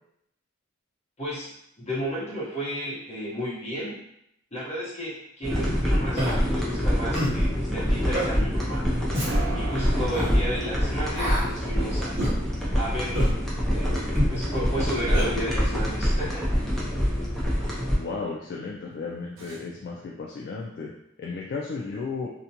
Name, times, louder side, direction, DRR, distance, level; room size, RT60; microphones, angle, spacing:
voice 1, 1.2-1.5 1.8-4.0 4.5-8.8 9.5-12.3 12.8-13.3 13.7-16.4, equal, 35° left, -8 dB, 1.0 m, -33 dB
sound 1, 5.4-18.0, equal, ahead, 0.5 m, -25 dB
Human voice, 6.1-6.4 7.1-7.4 8.1-8.3 9.1-9.3 10.1-10.3 11.1-11.5 12.2-12.4 13.1-13.4 14.1-14.3 15.1-15.3, equal, 35° right, 0.8 m, -27 dB
sound 2, 6.8-20.2, right 4 dB, 70° right, 0.5 m, -44 dB
voice 2, 18.0-20.9 21.2-22.3, left 4 dB, 50° left, -2 dB, 0.3 m, -34 dB
2.5 x 2.1 x 2.8 m, 0.77 s
head